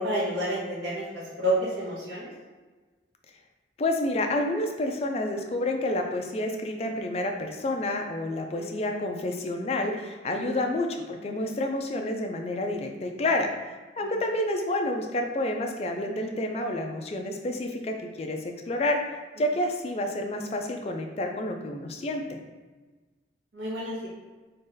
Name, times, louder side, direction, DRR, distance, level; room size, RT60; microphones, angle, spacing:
voice 1, 0.0-2.3 8.6-8.7 10.4-10.6 23.5-24.1, equal, 75° right, -6 dB, 0.8 m, -29 dB
voice 2, 3.8-13.5 14.0-19.0 19.4-22.4, left 1 dB, 35° left, 3 dB, 0.3 m, -29 dB
3.0 x 2.8 x 3.7 m, 1.3 s
head